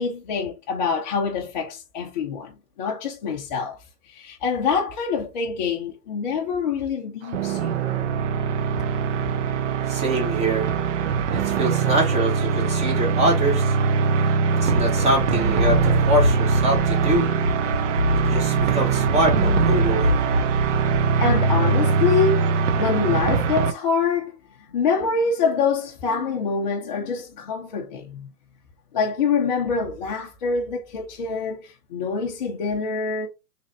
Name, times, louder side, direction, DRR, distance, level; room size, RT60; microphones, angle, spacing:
voice 1, 0.0-3.8 4.1-7.8 14.6-14.7 21.2-24.4 24.7-28.3 28.9-33.3, left 5 dB, 30° left, 0.5 m, -25 dB
sound 1, 7.2-23.7, right 6 dB, 50° right, 0.5 m, -22 dB
voice 2, 9.9-10.7 11.3-13.7 14.6-17.3 18.2-20.1, right 1 dB, 15° right, 1.1 m, -24 dB
sound 2, 14.6-22.2, equal, 75° right, 2.0 m, -25 dB
3.5 x 3.3 x 2.6 m
hypercardioid pair, 135°, 48 cm